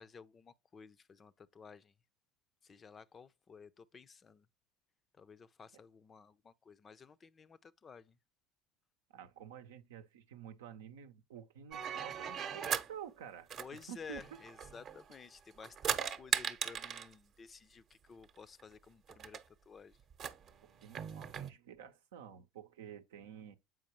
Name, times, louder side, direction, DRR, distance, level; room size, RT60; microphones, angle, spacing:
voice 1, 0.0-1.9 2.6-4.5 5.2-8.2 13.6-20.0, left 5 dB, 30° left, 0.5 m, -54 dB
voice 2, 9.1-14.2 20.8-23.6, right 9 dB, 80° right, 0.7 m, -50 dB
sound 1, 11.7-12.9 13.5-15.2 15.5-17.1 18.3-18.4 18.6-18.7 19.1-19.4 20.1-21.5, right 8 dB, 45° right, 0.8 m, -38 dB
7.7 x 4.8 x 3.0 m
hypercardioid pair, 75°, 0 cm